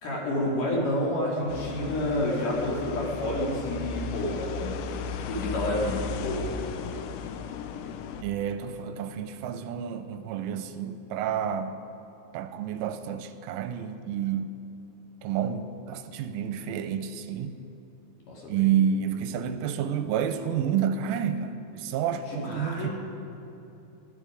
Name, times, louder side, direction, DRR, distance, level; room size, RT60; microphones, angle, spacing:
voice 1, 0.0-4.8 5.2-6.5 18.3-18.8 22.3-22.9, left 1 dB, 50° left, -4 dB, 3.5 m, -29 dB
sound 1, 1.5-8.2, left 5 dB, 85° left, 3.2 m, -35 dB
voice 2, 8.2-11.8 12.3-14.5 15.2-17.6 18.5-22.9, right 8 dB, 85° right, 9 dB, 3.1 m, -29 dB
21.5 x 13.0 x 5.0 m, 2.9 s
omnidirectional pair, 5.7 m